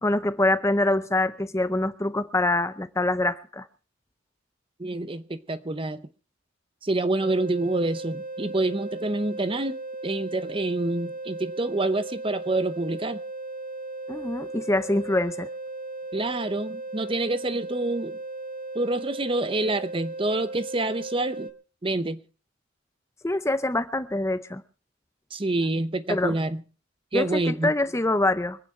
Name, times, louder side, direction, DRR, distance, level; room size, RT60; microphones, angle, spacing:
voice 1, 0.0-3.7 14.1-15.5 23.2-24.6 26.1-26.3 27.1-28.6, left 2 dB, 15° left, 0.6 m, -25 dB
voice 2, 4.8-6.1 6.8-13.2 16.1-18.2 18.7-21.5 21.8-22.2 25.3-26.6 27.1-27.7, right 2 dB, 25° right, 0.7 m, -27 dB
sound 1, 7.2-21.5, right 2 dB, 45° right, 2.0 m, -37 dB
25.0 x 9.0 x 4.3 m
head